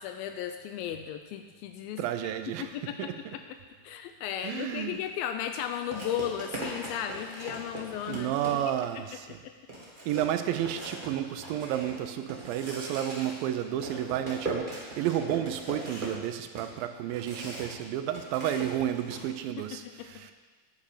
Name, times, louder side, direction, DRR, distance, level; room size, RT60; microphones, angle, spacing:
voice 1, 0.0-2.0 2.6-3.4 3.8-8.6 9.1-9.5 20.0-20.3, left 10 dB, 85° left, 7 dB, 2.4 m, -35 dB
voice 2, 2.0-3.4 4.4-5.0 8.1-9.4 10.1-20.3, right 11 dB, 80° right, 9 dB, 2.4 m, -32 dB
sound 1, 4.9-5.1 5.9-8.9 9.3-9.4 9.7-17.8 18.1-19.2, right 2 dB, 25° right, 1.1 m, -40 dB
9.7 x 8.7 x 5.0 m, 1.4 s
omnidirectional pair, 4.1 m